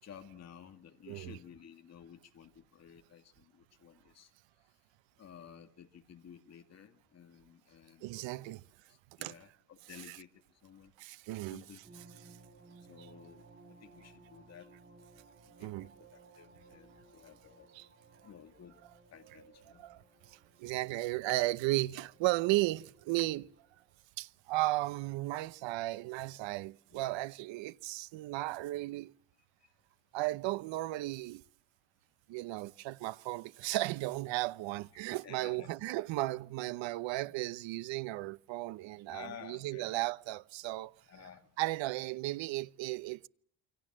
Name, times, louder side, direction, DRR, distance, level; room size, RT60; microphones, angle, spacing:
voice 1, 0.0-4.3 5.2-8.5 8.9-10.9 11.5-12.1 12.9-14.7 15.6-16.1 16.3-17.7 18.2-18.8 19.1-19.8 20.9-21.2 34.9-35.7 38.9-39.9 40.7-40.8 41.1-41.5, left 8 dB, 35° left, 2.3 m, -54 dB
voice 2, 1.1-1.4 8.0-8.6 9.2-9.4 9.9-10.2 11.0-12.3 13.0-13.1 15.6-15.9 17.7-17.9 18.8-18.9 19.8-20.0 20.3-23.5 24.2-29.1 30.1-31.4 32.3-40.9 41.6-43.3, right 18 dB, 75° right, 1.0 m, -35 dB
sound 1, 11.8-24.0, right 3 dB, 25° right, 6.5 m, -60 dB
28.5 x 25.0 x 7.6 m
cardioid pair, 165°, 44 cm